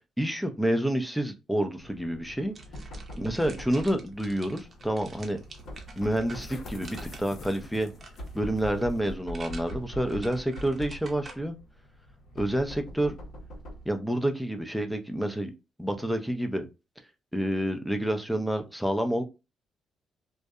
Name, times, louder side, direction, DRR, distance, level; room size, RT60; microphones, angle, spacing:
voice 1, 0.2-2.5 3.2-5.4 6.0-7.9 8.3-11.6 12.4-13.1 13.9-15.5 15.8-16.6 17.3-19.2, right 1 dB, ahead, 6 dB, 0.5 m, -28 dB
Knock, 1.8-14.0, equal, 85° left, 1.3 m, -43 dB
sound 1, 2.6-11.4, right 3 dB, 40° right, 0.7 m, -48 dB
sound 2, 4.1-9.2, left 2 dB, 55° left, 0.6 m, -48 dB
2.7 x 2.1 x 2.3 m, 0.27 s
cardioid pair, 90°, 0 cm